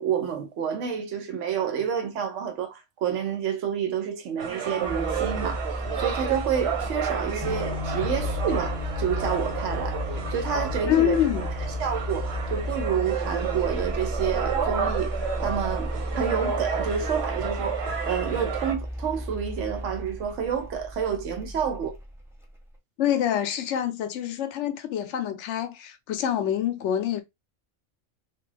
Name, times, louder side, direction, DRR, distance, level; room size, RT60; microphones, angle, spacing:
voice 1, 0.0-11.2 11.8-17.8 18.1-22.0, right 7 dB, 80° right, 1.0 m, -29 dB
sound 1, 4.4-18.7, right 7 dB, 60° right, 1.0 m, -31 dB
sound 2, 4.8-22.6, equal, 5° right, 0.4 m, -34 dB
sound 3, 7.4-13.1, left 4 dB, 30° left, 0.8 m, -35 dB
voice 2, 10.9-11.5 23.0-27.2, left 10 dB, 75° left, 0.9 m, -26 dB
2.4 x 2.4 x 3.2 m
omnidirectional pair, 1.3 m